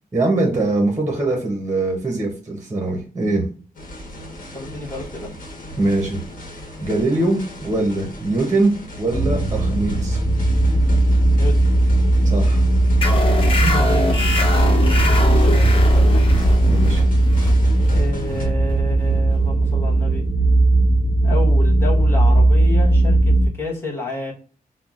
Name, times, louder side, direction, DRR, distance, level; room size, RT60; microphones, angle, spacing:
voice 1, 0.1-3.5 5.8-6.2 6.8-8.7 9.0-10.2 12.2-12.6 16.7-17.0, right 2 dB, 20° right, 1 dB, 0.6 m, -22 dB
sound 1, 3.7-18.4, equal, 65° left, 1.1 m, -37 dB
voice 2, 4.5-5.3 11.3-11.5 13.5-14.2 14.5-16.3 17.9-20.2 21.2-24.3, left 1 dB, 15° left, -5 dB, 1.1 m, -30 dB
sound 2, 9.1-23.5, right 1 dB, 80° left, 0.8 m, -17 dB
sound 3, 13.0-20.1, left 2 dB, 40° left, 0.6 m, -24 dB
5.6 x 2.0 x 2.3 m, 0.38 s
wide cardioid pair, 160°, 15 cm